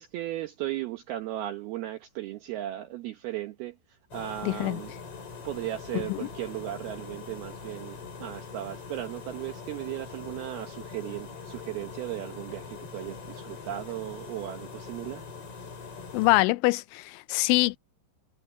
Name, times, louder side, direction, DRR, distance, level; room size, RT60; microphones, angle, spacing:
voice 1, 0.0-3.7 4.1-4.9 5.4-15.2, right 14 dB, 70° right, 2.6 m, -36 dB
sound 1, 4.1-16.4, left 5 dB, 35° left, 4.4 m, -42 dB
voice 2, 4.4-4.8 5.9-6.3 16.1-17.8, left 21 dB, 90° left, 3.0 m, -24 dB
omnidirectional pair, 5.3 m